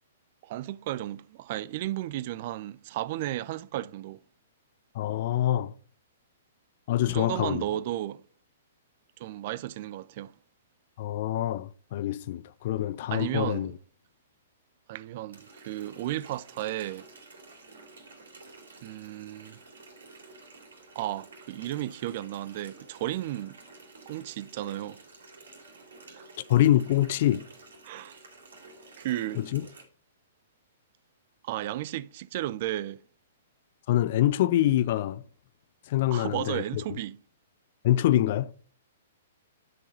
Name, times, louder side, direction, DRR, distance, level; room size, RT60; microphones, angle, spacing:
voice 1, 0.4-4.2 7.1-8.2 9.2-10.3 13.1-13.8 14.9-17.1 18.8-19.6 21.0-23.6 24.1-25.0 26.1-26.3 27.8-28.2 29.0-29.4 31.4-33.0 36.1-37.2, right 14 dB, 45° right, 0.4 m, -34 dB
voice 2, 4.9-5.7 6.9-7.6 11.0-13.7 26.5-27.4 29.4-29.6 33.9-35.2 35.9-36.8 37.8-38.5, left 13 dB, 50° left, 0.3 m, -25 dB
Water tap faucet, 15.3-29.8, right 3 dB, 70° right, 2.5 m, -51 dB
9.9 x 4.6 x 5.1 m
figure-of-eight pair, 115°, 0 cm